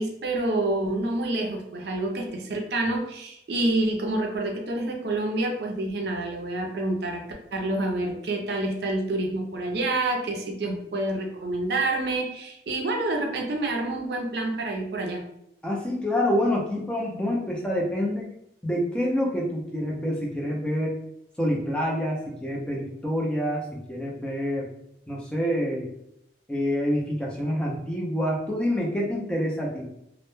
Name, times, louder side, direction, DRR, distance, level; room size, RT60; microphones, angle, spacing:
voice 1, 0.0-7.2 7.5-15.2, right 2 dB, 65° right, 2 dB, 0.4 m, -28 dB
voice 2, 15.6-18.3 18.6-21.0 21.4-24.7 25.1-25.9 26.5-29.8, equal, 5° left, -3 dB, 0.4 m, -27 dB
2.1 x 2.0 x 3.0 m, 0.78 s
head